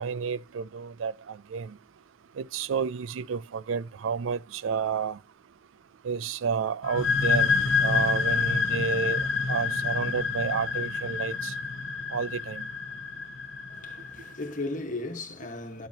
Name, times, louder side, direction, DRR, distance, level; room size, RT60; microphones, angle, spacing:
voice 1, 0.0-1.8 2.4-5.2 6.0-7.5 7.8-11.5 12.1-12.7, right 6 dB, 85° right, 0.4 m, -30 dB
sound 1, 6.8-14.3, left 5 dB, 85° left, 0.8 m, -28 dB
voice 2, 13.7-15.9, left 2 dB, 45° left, 1.4 m, -36 dB
12.0 x 8.6 x 2.8 m
head